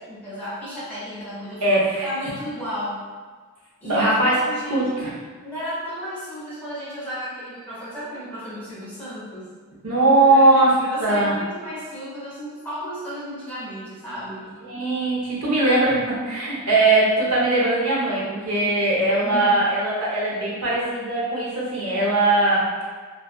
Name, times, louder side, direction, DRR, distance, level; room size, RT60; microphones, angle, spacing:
voice 1, 0.0-1.6 2.0-3.0 3.8-5.1 5.4-9.5 10.3-14.5 19.2-19.6, equal, 10° left, -11 dB, 1.1 m, -33 dB
voice 2, 1.6-2.1 3.8-4.4 4.7-5.1 9.8-10.7 11.0-11.4 14.6-22.6, right 2 dB, 75° right, -6 dB, 0.7 m, -20 dB
2.5 x 2.4 x 2.3 m, 1.5 s
head